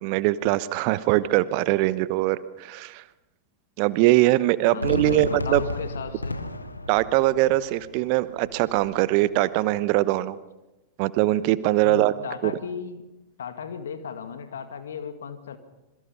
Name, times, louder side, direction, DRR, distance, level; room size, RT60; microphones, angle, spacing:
voice 1, 0.0-3.0 3.8-5.6 6.9-10.4 11.0-12.1 12.4-12.5, right 17 dB, 45° right, 17 dB, 1.0 m, -22 dB
voice 2, 4.7-6.4 11.8-13.0 13.4-15.6, left 6 dB, 65° left, 9 dB, 2.0 m, -35 dB
Fireworks, 4.8-9.9, left 2 dB, 80° left, 1.3 m, -35 dB
26.5 x 23.0 x 5.7 m, 0.98 s
figure-of-eight pair, 90°, 0 cm